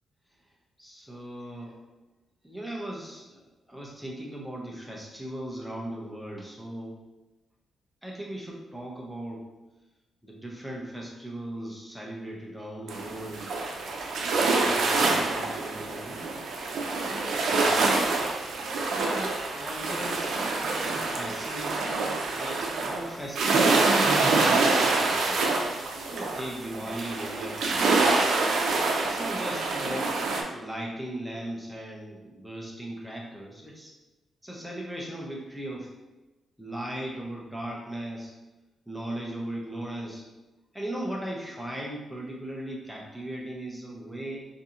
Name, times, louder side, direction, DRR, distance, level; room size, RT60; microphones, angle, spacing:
voice 1, 0.8-1.8 2.4-7.0 8.0-9.4 10.2-13.5 14.2-16.4 17.5-17.9 18.9-20.3 20.8-25.4 26.1-28.3 29.0-30.1 30.5-33.9 34.4-35.9 36.6-38.3 38.9-40.2 40.7-44.5, right 1 dB, ahead, -2 dB, 0.6 m, -38 dB
sound 1, 12.9-30.4, right 3 dB, 75° right, 0.5 m, -26 dB
2.7 x 2.7 x 3.6 m, 1.1 s
wide cardioid pair, 150°, 0 cm